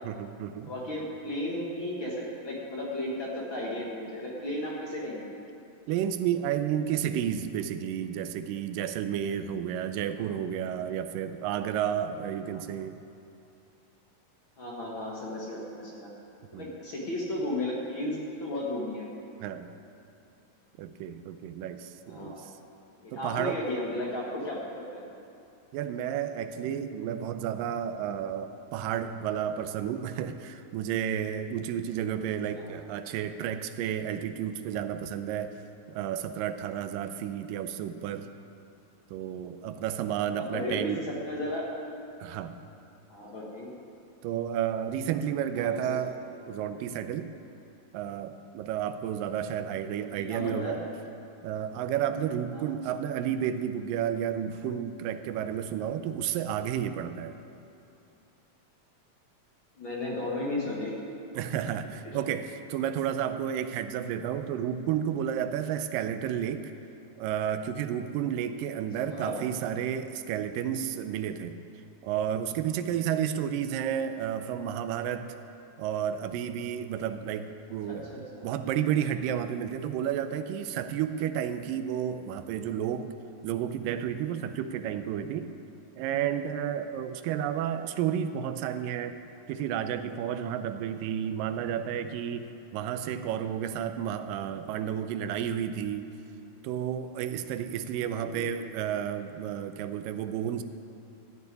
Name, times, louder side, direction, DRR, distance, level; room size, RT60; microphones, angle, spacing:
voice 1, 0.0-0.7 5.9-13.0 16.5-16.7 19.4-19.7 20.8-22.5 23.1-23.6 25.7-35.6 35.9-38.3 39.1-41.0 42.2-42.6 44.2-46.2 46.5-47.3 47.9-50.8 51.4-57.3 61.3-66.7 67.2-71.6 72.0-75.4 75.8-83.1 83.4-85.5 86.0-89.2 89.5-96.1 96.6-100.6, right 9 dB, 85° right, 10 dB, 2.2 m, -31 dB
voice 2, 0.7-5.3 12.5-12.6 14.6-16.1 16.5-19.1 22.1-22.4 23.0-25.2 32.5-32.8 40.4-41.7 43.1-43.7 45.5-46.0 50.1-50.8 52.5-52.6 59.8-60.9 62.0-62.2 69.1-69.4 77.9-78.5 98.2-98.4, left 1 dB, 45° left, -4 dB, 1.8 m, -34 dB
14.0 x 6.8 x 9.6 m, 2.7 s
omnidirectional pair, 4.0 m